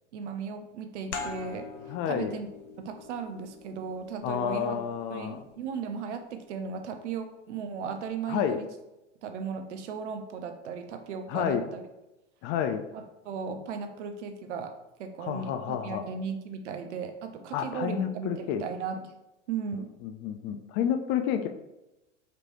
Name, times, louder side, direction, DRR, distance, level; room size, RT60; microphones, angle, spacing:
voice 1, 0.1-2.5 2.8-4.8 5.1-8.7 9.2-11.8 12.9-14.7 15.0-19.1 19.5-19.9, right 6 dB, 70° right, 7 dB, 0.7 m, -36 dB
sound 1, 1.1-6.4, left 4 dB, 75° left, 0.7 m, -44 dB
voice 2, 1.9-2.3 4.2-5.4 8.3-8.6 11.3-11.6 12.4-12.8 15.2-16.1 17.5-18.6 20.0-21.5, left 9 dB, 35° left, 7 dB, 0.4 m, -30 dB
5.1 x 3.1 x 3.0 m, 0.97 s
hypercardioid pair, 95°, 36 cm